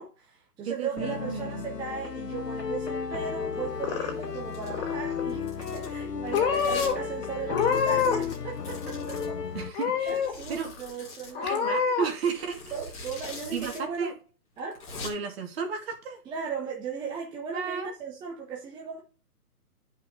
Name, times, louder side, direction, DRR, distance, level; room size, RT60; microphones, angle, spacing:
voice 1, 0.0-9.4 10.1-11.9 12.7-14.1 14.6-14.8 16.3-19.0, right 6 dB, 10° right, 1.1 m, -37 dB
voice 2, 0.6-1.7 9.5-10.2 10.5-10.7 11.4-12.6 13.5-14.1 15.0-16.2 17.5-17.9, right 6 dB, 40° right, 2.7 m, -33 dB
sound 1, 1.0-9.7, left 6 dB, 90° left, 1.4 m, -34 dB
Purr / Meow, 3.5-4.4 4.7-5.2 5.9-6.1 6.3-6.9 7.4-8.3 8.6-9.3 9.7-10.3 10.8-10.9 11.3-12.1, left 7 dB, 35° left, 3.4 m, -27 dB
Domestic sounds home sounds, 4.5-4.8 5.3-5.9 6.5-6.9 7.2-7.3 7.6-9.3 10.1-11.3 12.2-13.8 14.1-14.2 14.6-15.1, left 3 dB, 15° left, 2.5 m, -42 dB
10.5 x 5.6 x 3.9 m
hypercardioid pair, 145°, 47 cm